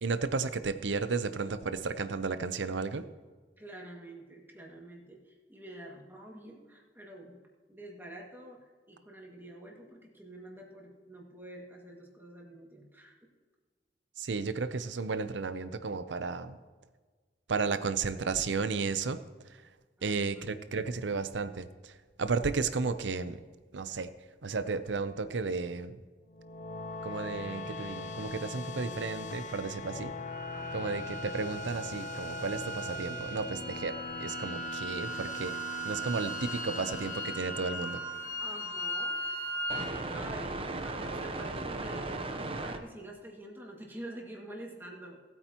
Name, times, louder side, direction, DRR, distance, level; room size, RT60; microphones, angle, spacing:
voice 1, 0.0-3.1 14.2-16.6 17.5-19.2 20.0-21.9 22.2-23.4 23.7-24.1 24.4-26.0 27.0-30.1 30.7-35.6 35.8-38.0, right 4 dB, 80° right, 12 dB, 0.7 m, -33 dB
voice 2, 3.6-7.4 7.7-13.2 20.0-20.5 30.5-31.0 38.4-39.2 40.1-45.2, right 1 dB, 10° right, -2 dB, 2.1 m, -47 dB
sound 1, 26.3-38.6, left 4 dB, 45° left, 0.5 m, -41 dB
sound 2, 30.3-40.0, right 2 dB, 45° right, 3.0 m, -39 dB
sound 3, 35.0-42.8, right 2 dB, 30° right, 0.8 m, -40 dB
18.5 x 8.7 x 3.0 m, 1.4 s
head